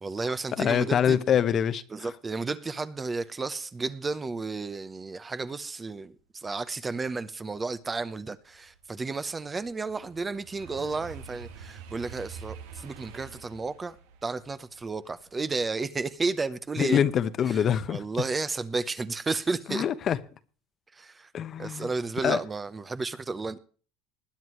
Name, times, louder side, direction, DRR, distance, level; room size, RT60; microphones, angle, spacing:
voice 1, 0.0-1.3 1.9-14.0 14.2-17.1 17.5-19.9 20.9-21.3 21.6-23.6, right 3 dB, 20° right, 0.8 m, -32 dB
voice 2, 0.6-1.8 16.8-18.0 19.7-20.2 21.3-21.9 22.2-22.4, left 8 dB, 40° left, 0.9 m, -24 dB
sound 1, 7.8-16.7 17.1-17.5, right 6 dB, 85° right, 2.0 m, -47 dB
20.5 x 9.4 x 3.1 m
supercardioid pair, 120°, 0 cm